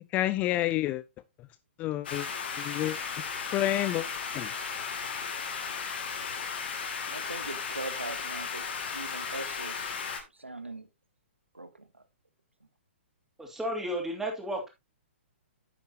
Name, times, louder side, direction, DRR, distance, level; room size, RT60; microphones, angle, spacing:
voice 1, 0.1-1.0 1.4-1.5 1.8-2.3 2.6-3.3 3.5-4.1 4.3-4.5, left 14 dB, 25° left, 0.4 m, -29 dB
sound 1, 2.0-10.2, left 6 dB, 55° left, 2.5 m, -35 dB
voice 2, 7.1-10.0 10.3-10.9 11.5-12.0, right 2 dB, 90° right, 1.0 m, -41 dB
voice 3, 13.4-14.7, equal, 5° right, 2.8 m, -33 dB
10.0 x 8.1 x 2.8 m
figure-of-eight pair, 120°, 6 cm